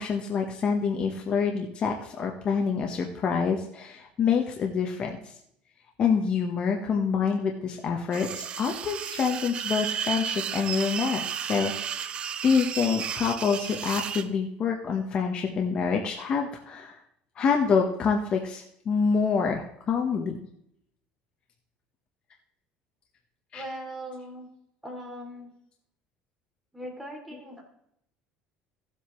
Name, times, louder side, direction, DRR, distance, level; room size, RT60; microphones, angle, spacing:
voice 1, 0.0-5.3 6.0-11.7 12.4-17.0 17.4-20.4 23.5-23.6, left 6 dB, 35° left, 2 dB, 1.0 m, -26 dB
sound 1, 8.1-14.3, right 8 dB, 35° right, 0.5 m, -33 dB
voice 2, 23.5-24.5 24.8-25.5 26.7-27.6, right 1 dB, 5° right, -1 dB, 2.8 m, -39 dB
16.0 x 8.0 x 3.1 m, 0.72 s
cardioid pair, 155°, 3 cm